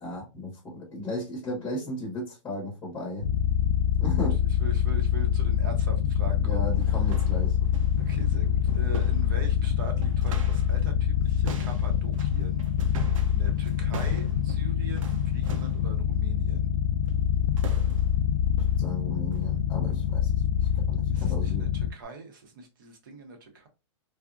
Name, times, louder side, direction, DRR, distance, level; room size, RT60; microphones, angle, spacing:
voice 1, 0.0-3.3 4.0-4.4 6.4-7.6 18.8-20.3 20.8-21.7, left 1 dB, 10° left, 0.8 m, -35 dB
sound 1, 3.2-21.9, left 10 dB, 60° left, 0.4 m, -25 dB
voice 2, 4.6-6.7 8.0-12.6 13.0-16.7 21.1-23.7, right 3 dB, 40° right, 0.7 m, -42 dB
sound 2, 5.9-6.0 6.6-10.8 11.0-15.9 17.1-17.3 17.6-18.2 18.6-18.9 19.3-19.5 19.9-20.1 20.6-20.8 21.3-21.4 22.0-22.1, right 5 dB, 85° right, 0.6 m, -43 dB
3.4 x 2.0 x 2.4 m
hypercardioid pair, 175°, 16 cm